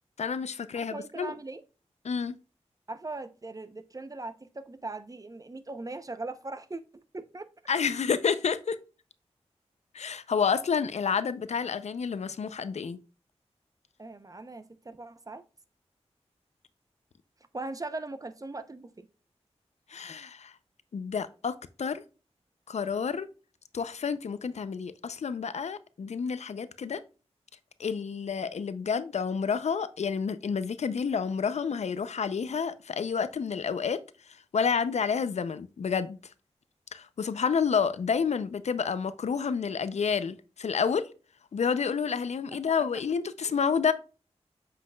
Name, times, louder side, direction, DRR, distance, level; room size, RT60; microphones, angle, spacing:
voice 1, 0.2-1.4 2.0-2.4 7.7-8.8 9.9-13.0 19.9-20.5 20.9-22.0 22.7-23.3 23.7-27.0 27.8-34.0 34.5-36.2 36.9-41.1 41.5-43.9, left 6 dB, 75° left, 0.5 m, -29 dB
voice 2, 0.7-1.6 2.9-7.5 14.0-15.4 17.5-19.1 42.9-43.0 43.4-43.6, right 2 dB, 30° right, 0.7 m, -40 dB
7.4 x 5.7 x 2.3 m
wide cardioid pair, 65°, 11 cm